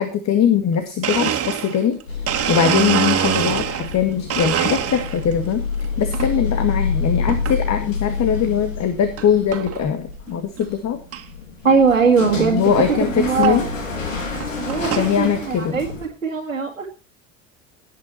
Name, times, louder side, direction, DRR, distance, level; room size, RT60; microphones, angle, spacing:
voice 1, 0.0-5.6 6.0-11.0 12.4-13.7 15.0-15.8, left 8 dB, 45° left, 9 dB, 2.3 m, -21 dB
Domestic sounds home sounds, 0.7-0.8 1.0-4.0 4.3-5.3 5.8-6.3 7.3-7.6 8.2-8.3 9.2-9.3 9.5-9.8 10.3-10.4 10.6-10.7 11.1-11.2 12.5-12.6 13.4-13.6 14.2-15.1, right 9 dB, 35° right, 2.3 m, -24 dB
sound 1, 2.1-16.1, left 4 dB, 75° left, 3.3 m, -28 dB
voice 2, 11.6-12.6 12.9-13.7 14.6-14.9 15.2-15.9 16.2-16.9, right 5 dB, 85° right, -1 dB, 2.0 m, -19 dB
19.0 x 9.5 x 4.3 m, 0.32 s
figure-of-eight pair, 60°, 39 cm